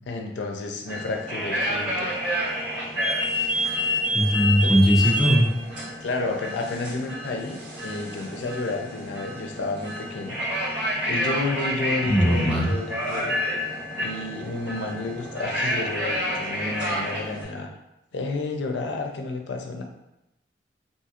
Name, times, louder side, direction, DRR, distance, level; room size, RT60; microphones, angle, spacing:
voice 1, 0.1-2.1 4.6-4.7 6.0-10.4 11.1-13.3 14.0-17.7 18.1-19.8, left 3 dB, 85° left, 3 dB, 0.4 m, -31 dB
sound 1, 0.8-17.4, equal, 85° right, 1.5 m, -29 dB
voice 2, 4.1-5.5 12.1-12.7, equal, ahead, -5 dB, 0.4 m, -19 dB
2.7 x 2.4 x 2.8 m, 0.91 s
head